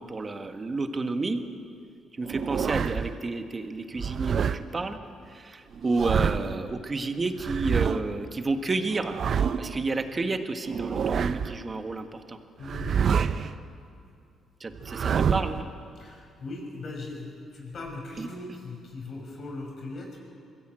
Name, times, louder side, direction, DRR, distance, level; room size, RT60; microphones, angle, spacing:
voice 1, 0.0-1.4 2.1-5.0 5.3-9.2 9.6-12.4 14.6-15.7 18.2-18.3, right 3 dB, 30° right, 7 dB, 1.6 m, -30 dB
sound 1, 2.2-3.1 4.0-4.6 5.7-6.6 7.4-8.0 8.9-9.8 10.6-11.6 12.6-13.5 14.7-15.6, right 7 dB, 55° right, 0.7 m, -27 dB
voice 2, 12.6-13.0 15.9-20.2, left 2 dB, 55° left, 1 dB, 5.8 m, -39 dB
22.5 x 15.5 x 9.0 m, 2.4 s
cardioid pair, 90°, 0 cm